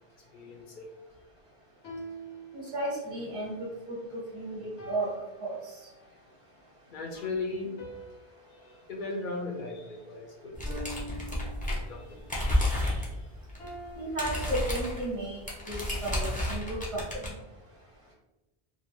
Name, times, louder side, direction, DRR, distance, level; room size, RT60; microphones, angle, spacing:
voice 1, 0.3-0.9 6.9-7.7 8.5-10.8 11.4-13.2 15.6-15.8, left 3 dB, 60° left, 0 dB, 0.6 m, -39 dB
sound 1, 1.8-3.2 4.8-6.2 7.8-10.1 10.7-12.2 13.6-15.2, right 1 dB, 85° left, 1.0 m, -46 dB
voice 2, 2.5-5.1 5.4-5.7 13.9-17.3, right 1 dB, 35° right, -4 dB, 0.8 m, -34 dB
sound 2, 10.5-12.0 12.2-13.1 13.5-13.7 13.9-17.3, left 1 dB, 15° left, 0.3 m, -30 dB
2.5 x 2.2 x 3.0 m, 1.0 s
omnidirectional pair, 1.1 m